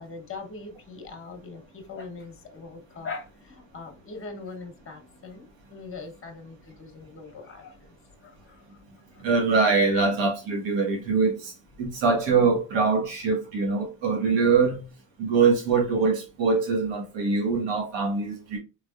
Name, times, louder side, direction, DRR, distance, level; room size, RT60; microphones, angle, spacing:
voice 1, 0.0-9.2, left 4 dB, 30° left, 1.1 m, -41 dB
voice 2, 9.2-11.5 11.8-14.9 15.2-18.6, right 4 dB, 85° right, 1.5 m, -23 dB
3.6 x 3.4 x 2.4 m
cardioid pair, 110°, 43 cm